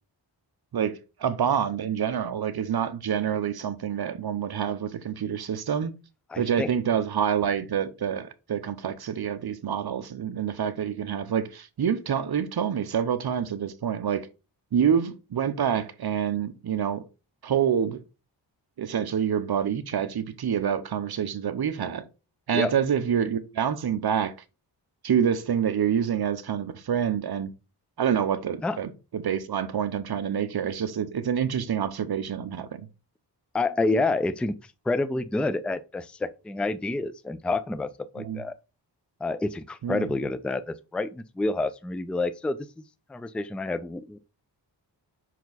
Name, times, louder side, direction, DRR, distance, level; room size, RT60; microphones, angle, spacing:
voice 1, 0.7-5.9 6.4-14.3 14.7-17.0 17.4-18.0 18.8-22.0 22.5-24.3 25.0-27.5 28.0-32.9 38.2-38.4 39.8-40.1, right 8 dB, 60° right, 0.8 m, -27 dB
voice 2, 6.3-6.7 22.5-22.7 28.6-28.8 33.5-34.6 34.9-38.6 39.2-42.6 43.1-44.2, left 2 dB, 5° left, 0.4 m, -28 dB
5.8 x 4.6 x 4.0 m
wide cardioid pair, 90°, 44 cm